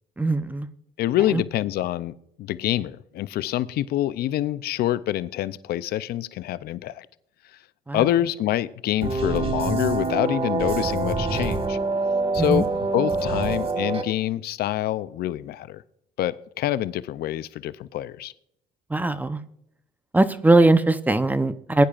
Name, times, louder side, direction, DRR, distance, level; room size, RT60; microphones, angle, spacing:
voice 1, 0.2-0.7 1.3-1.4 7.9-8.0 12.4-12.6 18.9-19.4 20.1-21.8, right 2 dB, 10° right, 0.7 m, -20 dB
voice 2, 1.0-7.1 7.5-7.6 7.9-11.8 12.3-12.7 12.9-15.8 16.2-18.3, left 13 dB, 65° left, 0.5 m, -26 dB
sound 1, 9.0-14.0, right 3 dB, 35° right, 1.8 m, -25 dB
20.0 x 10.5 x 2.5 m
cardioid pair, 110°, 17 cm